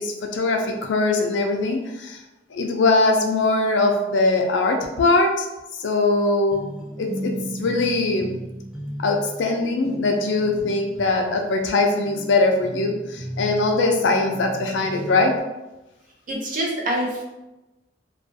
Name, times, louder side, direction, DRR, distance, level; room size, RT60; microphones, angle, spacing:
voice 1, 0.0-2.2 2.5-5.5 5.8-6.7 7.0-7.3 7.6-8.4 9.0-15.3, left 3 dB, 80° left, 3 dB, 0.4 m, -21 dB
sound 1, 6.5-15.4, right 1 dB, ahead, 0.5 m, -36 dB
voice 2, 16.3-17.2, right 1 dB, 45° right, -1 dB, 0.6 m, -25 dB
2.4 x 2.3 x 2.6 m, 1.0 s
head